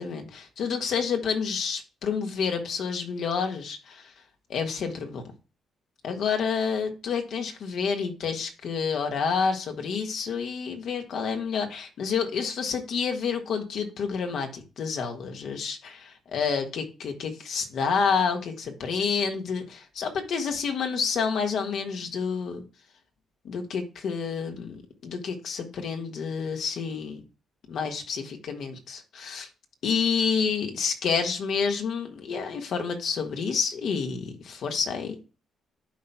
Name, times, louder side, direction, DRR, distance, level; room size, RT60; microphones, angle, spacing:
voice 1, 0.0-4.1 4.5-5.2 6.0-22.6 23.4-27.2 27.7-29.5 29.8-35.1, left 6 dB, 70° left, 1.5 m, -29 dB
12.0 x 4.3 x 2.2 m
cardioid pair, 90°, 0 cm